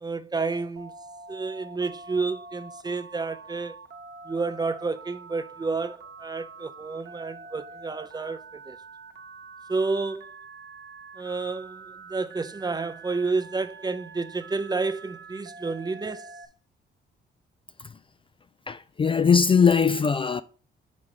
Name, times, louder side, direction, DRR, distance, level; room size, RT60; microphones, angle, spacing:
voice 1, 0.0-0.9 1.3-3.8 4.3-8.8 9.7-10.3 11.2-16.3, right 3 dB, 20° right, 0.6 m, -30 dB
Telephone, 0.8-16.5, right 4 dB, 60° right, 1.0 m, -45 dB
voice 2, 18.7-20.4, left 6 dB, 25° left, 0.3 m, -21 dB
5.1 x 4.7 x 5.6 m
cardioid pair, 90°, 20 cm